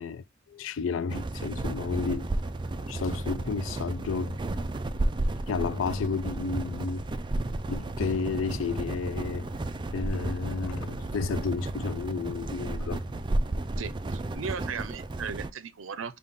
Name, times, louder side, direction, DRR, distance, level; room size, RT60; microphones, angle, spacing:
voice 1, 0.0-2.3 2.7-4.4 5.5-7.1 7.7-9.5 9.9-13.0, left 4 dB, 75° left, 0.4 m, -32 dB
sound 1, 1.1-15.5, right 2 dB, 25° right, 0.4 m, -33 dB
sound 2, 5.7-13.3, equal, 60° left, 0.8 m, -47 dB
voice 2, 13.8-16.2, right 6 dB, 75° right, 0.6 m, -37 dB
5.3 x 2.4 x 3.5 m
head